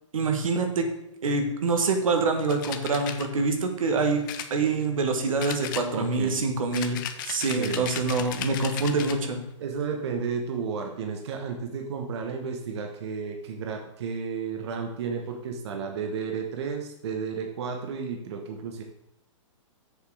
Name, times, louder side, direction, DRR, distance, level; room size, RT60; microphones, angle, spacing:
voice 1, 0.1-0.9 1.2-4.2 4.5-9.4, right 3 dB, 85° right, 4 dB, 1.6 m, -25 dB
sound 1, 2.5-3.3 4.3-5.1 5.4-6.2 6.7-9.2, left 10 dB, 40° left, 0.7 m, -36 dB
voice 2, 5.9-6.4 7.4-7.9 9.6-18.8, right 5 dB, 55° right, 3 dB, 1.1 m, -32 dB
6.7 x 6.6 x 4.8 m, 0.81 s
hypercardioid pair, 155°, 17 cm